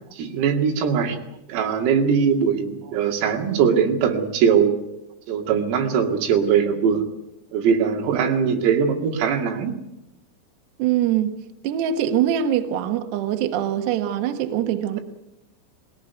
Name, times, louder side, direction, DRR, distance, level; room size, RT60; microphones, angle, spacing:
voice 1, 0.1-1.2 1.5-4.8 5.3-7.0 7.5-9.8, right 7 dB, 85° right, 3 dB, 4.9 m, -21 dB
voice 2, 10.8-11.4 11.6-15.0, right 10 dB, 65° right, 6 dB, 3.2 m, -23 dB
20.5 x 18.0 x 9.4 m, 0.88 s
omnidirectional pair, 5.9 m